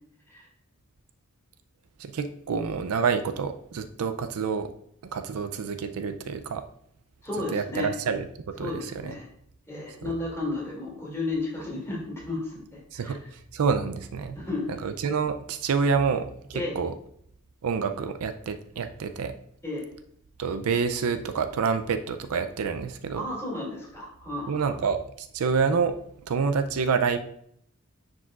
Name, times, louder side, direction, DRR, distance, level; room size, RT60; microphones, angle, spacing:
voice 1, 2.0-4.7 5.0-6.6 7.5-9.1 12.9-13.2 13.5-14.4 14.8-16.9 17.6-19.3 20.4-23.2 24.5-25.9 26.3-27.2, right 5 dB, 75° right, 9 dB, 0.4 m, -27 dB
voice 2, 7.2-7.9 8.6-9.3 9.7-13.2 14.3-14.8 16.5-16.7 19.6-19.9 23.1-24.7, left 2 dB, 15° left, -5 dB, 2.5 m, -33 dB
9.7 x 4.8 x 2.4 m, 0.70 s
head